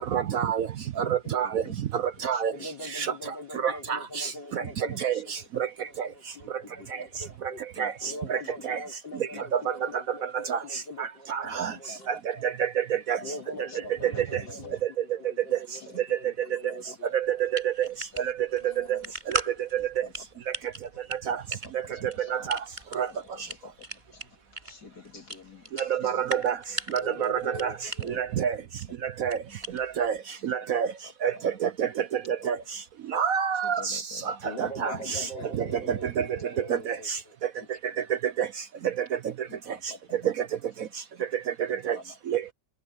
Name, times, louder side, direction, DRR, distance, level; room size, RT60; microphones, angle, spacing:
voice 1, 0.1-0.7 1.0-1.6 2.2-2.5 3.0-3.1 3.6-4.3 5.0-5.2 7.8-7.9 8.3-8.4 8.7-8.8 9.5-9.6 10.5-10.6 11.3-11.7 12.6-13.2 17.1-17.7 18.9-19.0 19.7-19.8 21.3-21.4 22.3-22.6 23.0-23.1 25.9-26.5 26.9-27.7 28.2-28.5 29.2-29.4 30.0-30.1 30.4-30.9 31.2-31.3 31.6-31.9 32.4-32.6 33.1-34.0 34.6-35.2 36.2-36.3 36.9-37.2 38.4-38.5 41.9-42.0 42.3-42.5, right 8 dB, 60° right, 1.0 m, -27 dB
voice 2, 1.0-1.7 2.3-2.4 5.1-5.2 6.8-7.1 7.8-8.2 9.3-9.4 11.4-11.5 11.9-12.0 12.3-12.4 13.0-14.8 16.7-17.0 19.8-20.1 21.5-22.5 23.1-24.2 24.6-26.3 28.0-28.2 31.3-31.4 33.6-34.3 34.8-36.3 39.5-39.6 39.9-40.0 41.7-42.1, left 3 dB, 60° left, 4.0 m, -46 dB
voice 3, 2.5-7.6 8.0-12.1 13.2-17.1 17.4-17.6 18.6-19.1 19.4-19.7 24.2-24.3 27.0-28.3 34.4-37.3, left 1 dB, 85° left, 5.2 m, -43 dB
sound 1, 17.2-30.2, right 2 dB, 25° right, 6.9 m, -39 dB
omnidirectional pair, 1.9 m